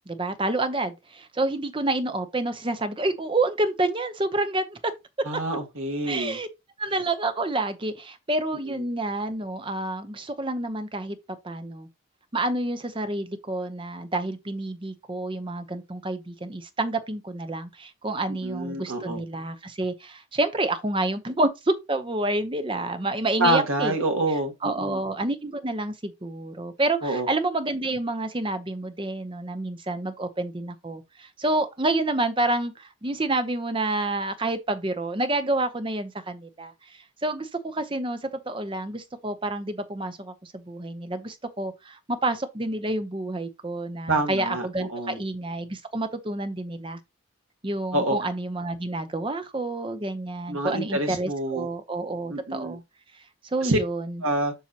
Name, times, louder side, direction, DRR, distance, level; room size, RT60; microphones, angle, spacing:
voice 1, 0.1-4.8 6.0-6.5 6.8-11.2 11.4-11.9 12.3-23.9 24.6-47.0 47.6-52.8 53.5-54.2, right 2 dB, 25° right, 0.7 m, -28 dB
voice 2, 5.2-6.4 8.7-8.8 18.3-19.2 23.4-25.0 27.0-27.3 44.1-45.2 47.9-48.2 50.5-51.7 52.3-52.8 53.6-53.8 54.2-54.5, right 1 dB, 85° right, 1.5 m, -27 dB
7.4 x 5.5 x 2.9 m
head